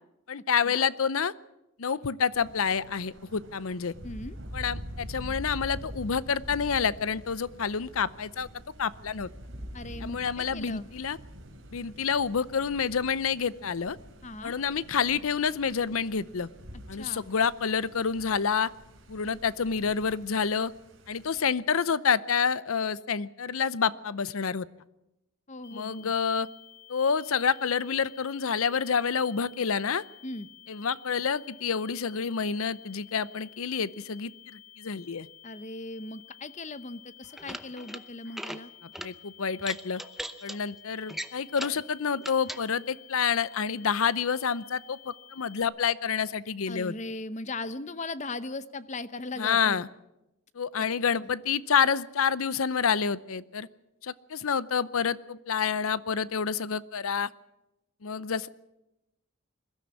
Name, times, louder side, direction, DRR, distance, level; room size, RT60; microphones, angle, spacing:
voice 1, 0.3-1.3 1.8-3.9 4.5-8.5 8.8-9.3 10.0-11.2 11.7-14.0 14.4-16.5 16.9-18.7 19.1-20.7 21.1-24.7 25.7-26.5 26.9-30.0 30.7-35.3 38.8-40.0 40.4-46.9 49.4-49.9 50.5-53.7 54.0-57.3 58.0-58.5, left 6 dB, 80° left, 19 dB, 0.7 m, -28 dB
Thunder, 2.3-21.5, equal, 65° right, 3.3 m, -45 dB
voice 2, 4.0-4.4 9.7-10.9 14.2-14.5 16.9-17.3 25.5-26.1 30.2-30.5 35.4-38.7 46.7-49.8, left 2 dB, 35° left, 15 dB, 0.8 m, -38 dB
sound 1, 25.6-45.6, left 12 dB, 55° left, 2.0 m, -52 dB
sound 2, 37.2-38.0 38.3-38.6 38.9-39.1 39.6-40.6 41.1-41.8 42.2-42.6, equal, ahead, 0.7 m, -38 dB
21.5 x 13.0 x 9.6 m, 0.93 s
head